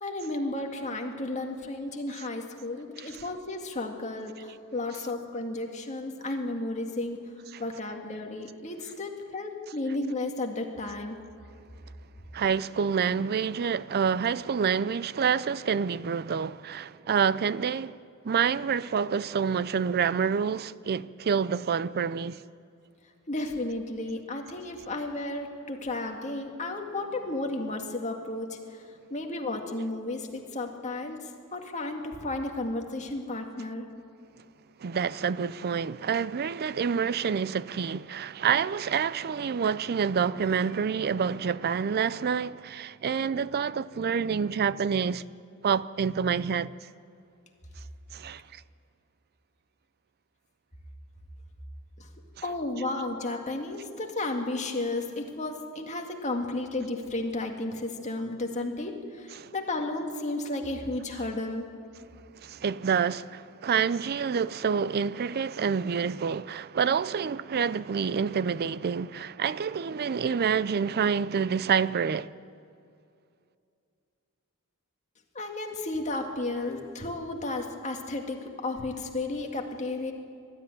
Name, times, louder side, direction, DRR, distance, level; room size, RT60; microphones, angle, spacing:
voice 1, 0.0-7.2 7.6-11.2 23.3-28.6 29.1-31.2 31.5-33.9 52.0-52.1 52.4-61.7 75.3-80.1, left 2 dB, 30° left, 2.1 m, -33 dB
voice 2, 12.3-22.4 34.8-45.2 45.6-46.8 48.1-48.6 59.4-59.5 62.4-72.3, right 6 dB, 45° right, 0.4 m, -27 dB
21.0 x 13.0 x 9.9 m
head